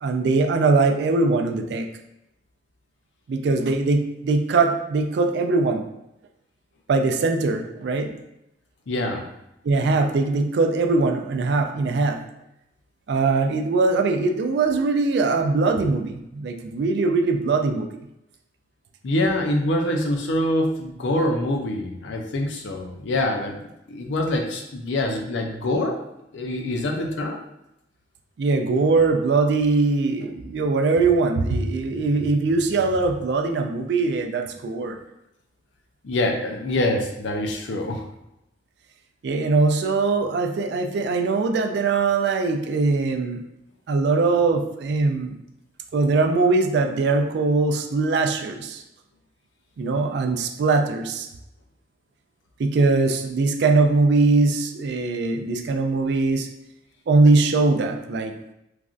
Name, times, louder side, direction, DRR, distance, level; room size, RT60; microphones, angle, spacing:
voice 1, 0.0-1.9 3.3-5.9 6.9-8.1 9.6-12.2 13.1-17.9 28.4-35.0 39.2-43.4 43.9-45.3 45.9-48.8 49.8-51.3 52.6-56.5 57.1-58.5, right 3 dB, 60° right, 5 dB, 0.3 m, -21 dB
voice 2, 8.9-9.2 19.0-26.0 26.3-27.4 36.0-38.0, left 1 dB, 75° left, 2 dB, 0.5 m, -25 dB
3.1 x 2.5 x 2.4 m, 0.85 s
head